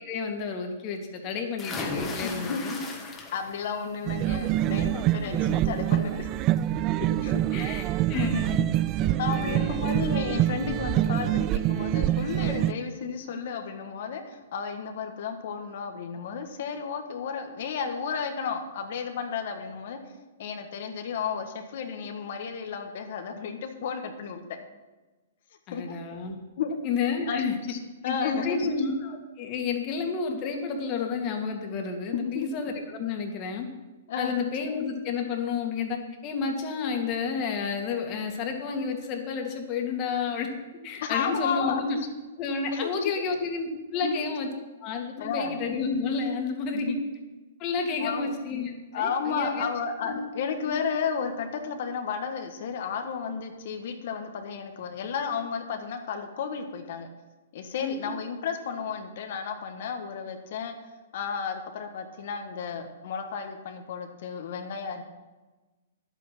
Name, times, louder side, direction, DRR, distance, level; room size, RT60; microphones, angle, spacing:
voice 1, 0.0-2.8 7.0-7.1 7.5-8.7 9.4-9.9 25.7-26.3 26.8-27.5 28.0-33.7 34.2-40.5 40.8-42.0 42.4-44.5 44.8-47.0 47.6-49.7 50.0-50.2 50.6-50.8 57.8-58.1, left 5 dB, 35° left, 2 dB, 2.2 m, -31 dB
sound 1, 1.6-3.7 4.1-4.5 5.9-6.0 6.4-6.5, left 3 dB, 20° left, 1.8 m, -35 dB
voice 2, 2.2-2.6 3.3-6.3 7.2-7.4 9.0-20.0 20.4-24.4 25.7-25.8 26.6-26.8 27.3-27.8 28.0-28.7 32.1-32.5 34.1-34.3 41.0-41.8 42.7-43.1 44.0-44.2 45.2-45.6 46.7-47.0 48.0-48.4 48.9-57.1 57.5-60.7 61.1-65.0, left 6 dB, 60° left, 5 dB, 1.5 m, -33 dB
sound 2, 4.1-12.7, right 13 dB, 30° right, 0.4 m, -26 dB
11.0 x 8.5 x 6.0 m, 1.2 s
hypercardioid pair, 130°, 0 cm